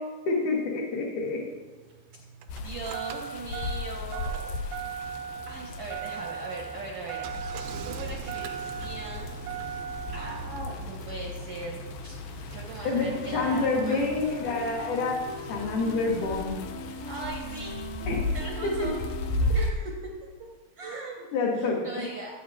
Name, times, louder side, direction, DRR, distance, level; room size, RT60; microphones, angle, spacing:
voice 1, 0.3-1.4 12.8-15.2 15.5-16.6 18.1-18.3 18.8-18.9 21.3-21.9, left 3 dB, 60° left, -4 dB, 2.6 m, -27 dB
Engine starting, 1.3-16.4, right 8 dB, 85° right, 2.3 m, -40 dB
sound 1, 2.5-19.7, left 2 dB, 80° left, 2.3 m, -36 dB
voice 2, 2.6-4.5 5.5-9.3 10.1-12.2 12.5-14.0 17.1-17.9 18.3-19.0 19.5-20.0 20.8-21.2 21.6-22.3, right 2 dB, 65° right, -2 dB, 1.4 m, -39 dB
sound 2, 12.8-19.5, equal, 30° left, 1.2 m, -40 dB
17.0 x 8.5 x 2.8 m, 1.3 s
omnidirectional pair, 4.3 m